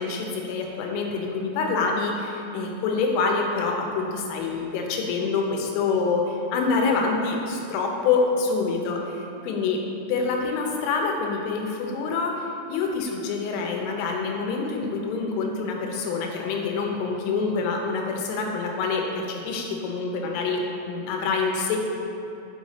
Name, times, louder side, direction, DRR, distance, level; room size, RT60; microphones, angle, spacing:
voice 1, 0.0-9.8 10.1-21.8, left 4 dB, 80° left, 1 dB, 3.3 m, -26 dB
6.5 x 5.6 x 4.0 m, 2.7 s
omnidirectional pair, 5.8 m